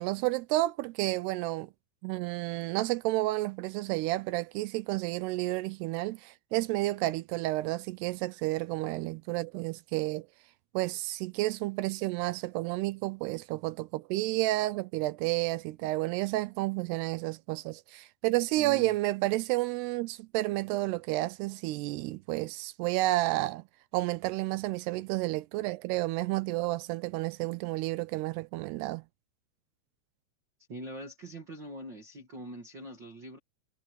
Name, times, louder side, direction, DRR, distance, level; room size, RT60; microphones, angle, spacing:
voice 1, 0.0-1.7 2.0-10.3 10.7-23.6 23.9-29.0, right 18 dB, 80° right, 2.5 m, -31 dB
voice 2, 18.5-18.9 30.7-33.4, right 1 dB, 45° right, 1.5 m, -43 dB
omnidirectional pair, 5.1 m